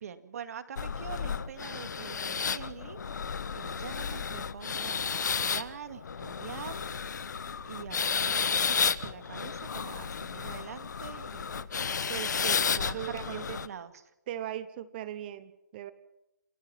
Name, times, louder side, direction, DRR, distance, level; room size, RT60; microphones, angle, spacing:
voice 1, 0.0-7.2 7.6-8.8 9.0-11.7 12.7-14.0, right 8 dB, 55° right, 11 dB, 2.2 m, -44 dB
sound 1, 0.8-13.7, left 6 dB, 70° left, 1.3 m, -32 dB
voice 2, 12.1-13.6 14.3-15.9, right 12 dB, 30° right, 15 dB, 1.0 m, -39 dB
28.0 x 21.5 x 6.0 m, 0.89 s
hypercardioid pair, 155°, 10 cm